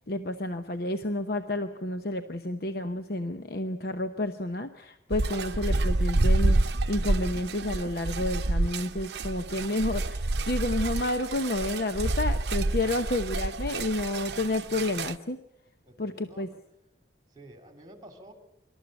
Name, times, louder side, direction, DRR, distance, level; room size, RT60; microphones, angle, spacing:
voice 1, 0.1-15.4 16.0-16.5, left 2 dB, 55° left, 7 dB, 0.9 m, -30 dB
sound 1, 5.1-15.2, right 2 dB, 65° right, 0.7 m, -28 dB
voice 2, 12.8-13.2 15.9-16.6 17.3-18.3, right 1 dB, 20° right, 5 dB, 3.1 m, -51 dB
26.0 x 13.0 x 9.0 m, 0.87 s
head